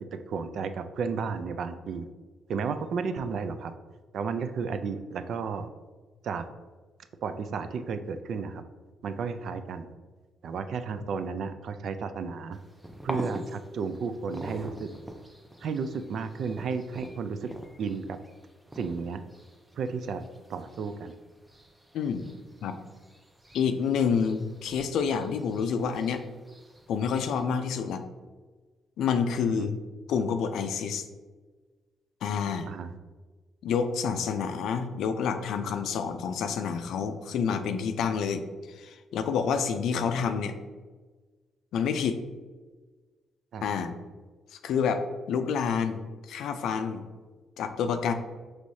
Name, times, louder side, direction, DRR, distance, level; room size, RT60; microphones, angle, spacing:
voice 1, 0.1-2.1 2.5-3.7 4.1-5.7 6.2-6.5 7.2-8.6 9.0-9.9 10.4-12.6 13.0-14.9 15.6-17.5 17.8-18.2 18.8-19.2 19.8-20.2 20.5-21.1 29.6-29.7 32.7-32.9 43.5-43.7, right 5 dB, 65° right, 10 dB, 0.3 m, -33 dB
sound 1, 12.5-27.4, right 1 dB, 10° right, 0.5 m, -45 dB
voice 2, 21.9-22.2 22.6-22.8 23.5-26.2 26.9-28.0 29.0-29.8 30.1-31.0 32.2-32.7 33.6-38.4 38.8-40.6 41.7-42.2 43.6-43.9 44.6-47.0 47.6-48.1, left 6 dB, 80° left, 8 dB, 0.4 m, -28 dB
4.7 x 3.1 x 2.6 m, 1.3 s
cardioid pair, 90°, 0 cm